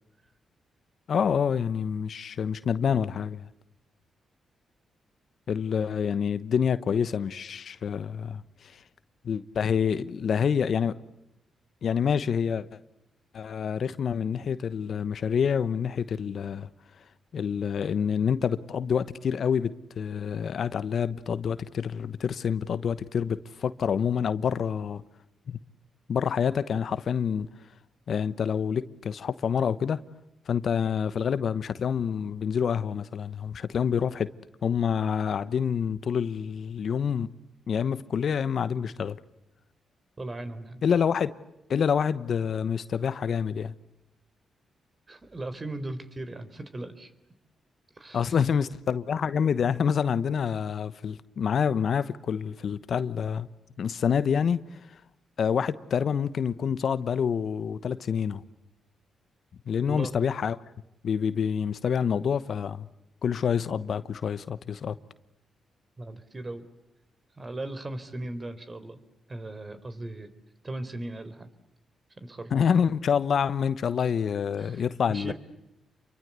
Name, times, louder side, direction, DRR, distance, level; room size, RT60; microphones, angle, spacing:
voice 1, 1.1-3.5 5.5-8.8 9.2-11.0 11.8-12.8 13.3-16.7 17.3-25.0 25.5-25.6 26.1-27.5 28.1-30.0 30.5-34.3 34.6-37.3 37.7-39.2 40.8-41.3 41.7-43.7 48.1-53.5 53.8-54.6 55.4-58.4 59.7-60.6 61.0-62.9 63.2-64.9 72.5-75.3, left 7 dB, 65° left, 1.1 m, -27 dB
voice 2, 40.2-40.8 45.1-47.1 48.0-48.4 59.9-60.1 66.0-66.6 67.3-69.0 69.3-70.3 70.6-71.5 72.2-72.5 74.6-75.3, right 2 dB, 35° right, 4.1 m, -38 dB
29.5 x 24.0 x 8.3 m
supercardioid pair, 45°, 0 cm